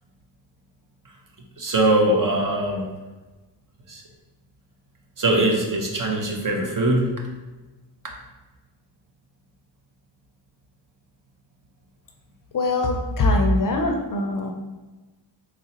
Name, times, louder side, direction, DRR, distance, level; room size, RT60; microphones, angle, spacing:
voice 1, 1.6-2.9 3.9-4.0 5.2-7.1, right 1 dB, 40° right, 0 dB, 0.7 m, -21 dB
voice 2, 12.5-14.5, left 2 dB, 45° left, 3 dB, 0.5 m, -22 dB
3.8 x 3.1 x 2.9 m, 1.2 s
cardioid pair, 85°, 49 cm